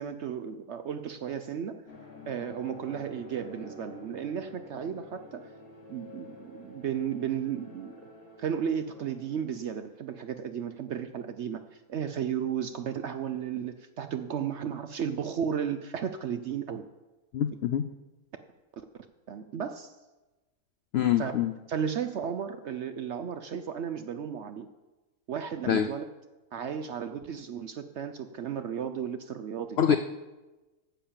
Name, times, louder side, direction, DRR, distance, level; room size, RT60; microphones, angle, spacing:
voice 1, 0.0-1.8 2.3-5.4 5.9-8.0 8.4-16.8 18.8-18.9 19.3-19.9 21.2-21.3 21.7-24.7 25.3-26.0 26.5-30.0, right 8 dB, 65° right, 9 dB, 0.7 m, -34 dB
sound 1, 1.9-9.5, left 2 dB, 60° left, 2.8 m, -49 dB
voice 2, 17.3-17.8 20.9-21.5 25.7-25.9 29.8-30.0, left 9 dB, 85° left, 9 dB, 0.5 m, -25 dB
10.0 x 7.0 x 7.3 m, 1.1 s
omnidirectional pair, 1.7 m